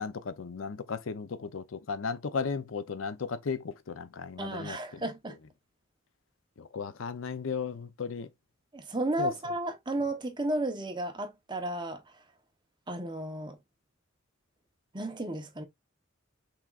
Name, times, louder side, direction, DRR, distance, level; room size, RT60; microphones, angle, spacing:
voice 1, 0.0-5.1 6.6-8.3 9.2-9.3, left 5 dB, 85° left, 0.6 m, -35 dB
voice 2, 4.4-5.4 8.7-12.0 12.9-13.6 14.9-15.6, right 1 dB, 25° right, 0.9 m, -33 dB
6.0 x 3.5 x 2.4 m
head